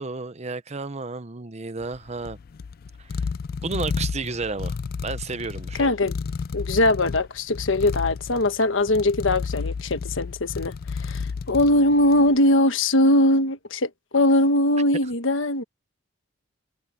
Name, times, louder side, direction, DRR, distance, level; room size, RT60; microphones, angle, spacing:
voice 1, 0.0-2.4 3.0-3.3 3.6-5.9, right 3 dB, 35° right, 0.8 m, -32 dB
sound 1, 1.8-12.4, left 5 dB, 45° left, 0.3 m, -32 dB
voice 2, 5.8-6.1 6.5-15.6, left 1 dB, 70° left, 1.3 m, -21 dB
head